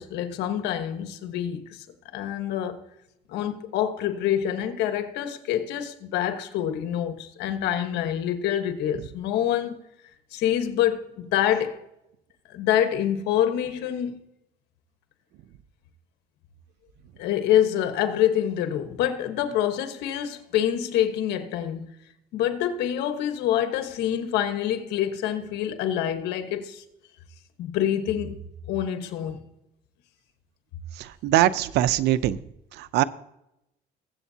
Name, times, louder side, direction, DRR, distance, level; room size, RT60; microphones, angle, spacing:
voice 1, 0.0-1.8 2.1-2.8 3.3-9.8 10.3-11.8 12.5-14.2 17.2-21.9 22.3-26.8 27.6-28.4 28.7-29.4, left 10 dB, 85° left, 1.3 m, -26 dB
voice 2, 31.2-32.4 32.8-33.0, right 14 dB, 85° right, 0.6 m, -21 dB
21.0 x 8.1 x 2.8 m
cardioid pair, 110°, 17 cm